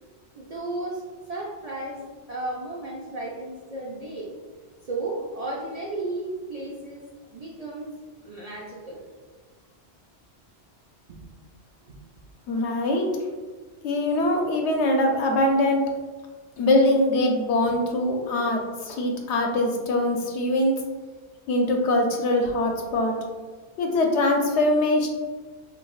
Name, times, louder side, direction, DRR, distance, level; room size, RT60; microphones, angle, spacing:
voice 1, 0.3-4.3 4.8-7.9 8.2-9.0 11.1-11.2, right 2 dB, 60° right, -4 dB, 0.4 m, -34 dB
voice 2, 12.5-13.1 13.8-15.9 16.6-20.8 21.5-23.1 23.8-25.1, left 1 dB, 80° left, 2 dB, 0.9 m, -22 dB
4.6 x 2.3 x 2.3 m, 1.4 s
omnidirectional pair, 1.2 m